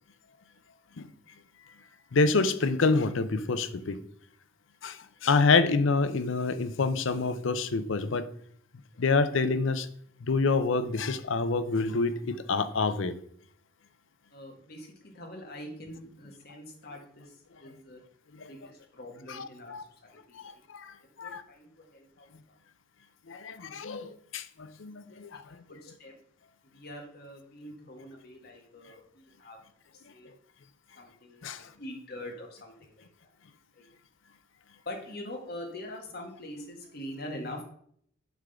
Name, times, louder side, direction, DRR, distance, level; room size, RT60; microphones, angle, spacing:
voice 1, 2.1-4.0 4.8-8.3 9.0-9.9 10.2-13.1 18.4-18.5 19.3-19.8 20.3-21.4 23.3-25.6 31.4-31.7, left 4 dB, 70° left, 13 dB, 0.6 m, -27 dB
voice 2, 14.3-18.0 18.3-19.9 20.3-20.5 21.2-22.3 23.3-23.6 25.1-25.2 25.7-26.2 26.6-29.6 29.9-30.3 31.0-33.3 33.8-33.9 34.9-37.6, left 1 dB, 50° left, 1 dB, 1.9 m, -44 dB
8.1 x 3.8 x 6.8 m, 0.64 s
head